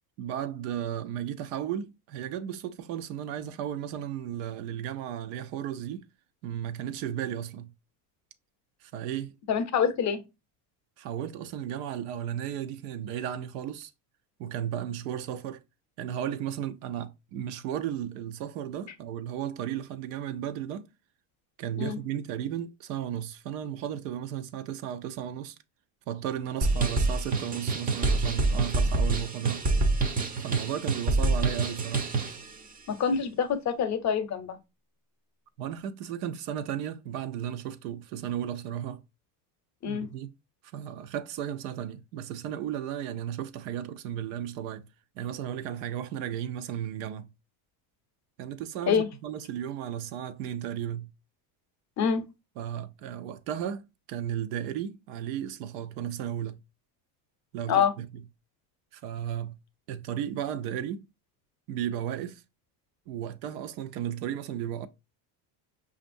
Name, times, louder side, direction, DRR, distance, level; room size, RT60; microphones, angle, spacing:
voice 1, 0.2-6.1 6.4-7.7 8.8-9.3 11.0-13.9 14.4-15.6 16.0-20.9 21.6-25.6 26.1-29.6 30.4-32.1 35.6-39.0 39.9-40.3 40.7-44.8 45.1-47.3 48.4-51.1 52.6-56.6 57.5-58.1 58.9-59.6 59.9-61.1 61.7-62.4 63.1-64.9, right 10 dB, 85° right, 0.7 m, -34 dB
voice 2, 9.5-10.2 21.8-22.0 32.9-34.6 39.8-40.1 48.9-49.1 52.0-52.2 57.7-57.9, left 7 dB, 35° left, 0.6 m, -26 dB
sound 1, 26.6-32.4, right 3 dB, 20° right, 0.4 m, -26 dB
5.2 x 2.5 x 2.5 m
cardioid pair, 120°, 48 cm